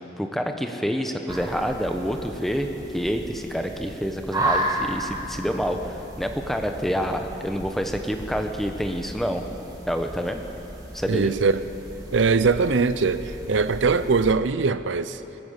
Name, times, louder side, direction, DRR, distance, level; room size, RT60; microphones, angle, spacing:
voice 1, 0.2-9.4 9.9-10.4 10.9-11.3, equal, ahead, 5 dB, 0.8 m, -27 dB
sound 1, 1.3-14.3, right 1 dB, 20° right, 1.7 m, -34 dB
voice 2, 11.1-11.6 12.1-15.2, right 4 dB, 80° right, 13 dB, 0.5 m, -21 dB
20.5 x 8.8 x 8.1 m, 3.0 s
head